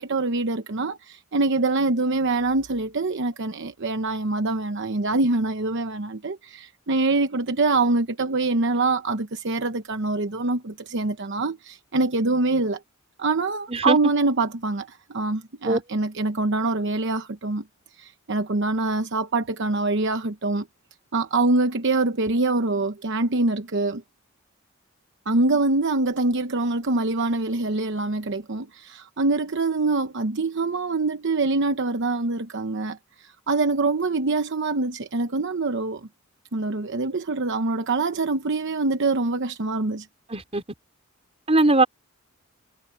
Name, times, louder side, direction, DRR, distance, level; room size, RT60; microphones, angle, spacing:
voice 1, 0.0-12.8 13.2-17.6 18.0-20.7 21.1-24.0 25.3-36.1 36.5-40.1, right 3 dB, 60° right, 0.9 m, -24 dB
voice 2, 40.3-40.6 41.5-41.8, right 2 dB, 30° right, 3.8 m, -20 dB
head